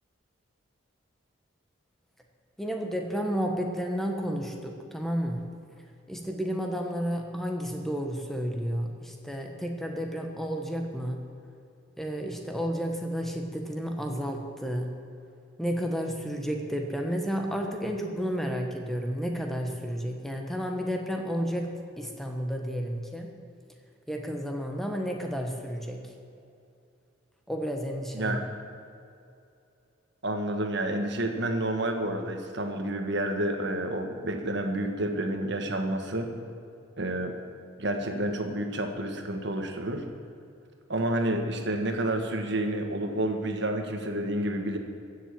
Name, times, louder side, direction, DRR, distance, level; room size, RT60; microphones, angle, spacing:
voice 1, 2.6-5.4 6.1-11.2 12.0-14.9 15.6-21.7 22.0-23.3 24.1-26.0 27.5-28.4, equal, ahead, 2 dB, 1.4 m, -31 dB
voice 2, 30.2-36.3 37.0-37.3 37.8-40.1 40.9-44.8, right 1 dB, 55° right, 5 dB, 1.6 m, -29 dB
15.5 x 7.5 x 9.1 m, 2.6 s
head